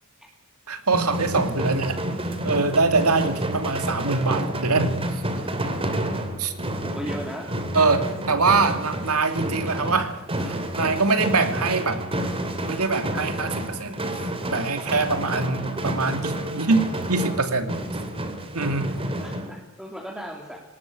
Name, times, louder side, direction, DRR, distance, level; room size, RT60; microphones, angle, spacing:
voice 1, 0.7-2.0 2.4-5.2 6.4-6.5 7.7-12.0 12.6-17.8 18.5-18.9, right 3 dB, 85° right, 8 dB, 2.7 m, -24 dB
sound 1, 0.9-19.5, right 1 dB, 25° right, 2.7 m, -30 dB
voice 2, 6.8-7.5 19.2-20.6, equal, ahead, -1 dB, 3.0 m, -36 dB
19.5 x 19.0 x 8.6 m, 0.89 s
head